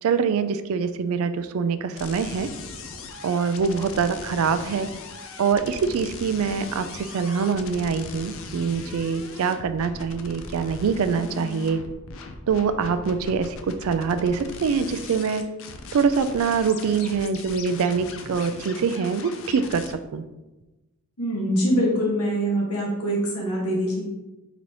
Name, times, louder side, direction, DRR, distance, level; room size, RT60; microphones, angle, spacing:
voice 1, 0.0-2.5 3.2-4.9 5.4-11.8 12.5-15.4 15.9-19.9 20.1-20.2, right 5 dB, 70° right, 11 dB, 0.3 m, -24 dB
sound 1, 1.9-19.9, left 3 dB, 60° left, 0.5 m, -39 dB
voice 2, 21.2-24.0, equal, 80° left, -3 dB, 1.4 m, -24 dB
4.7 x 4.0 x 2.9 m, 1.1 s
head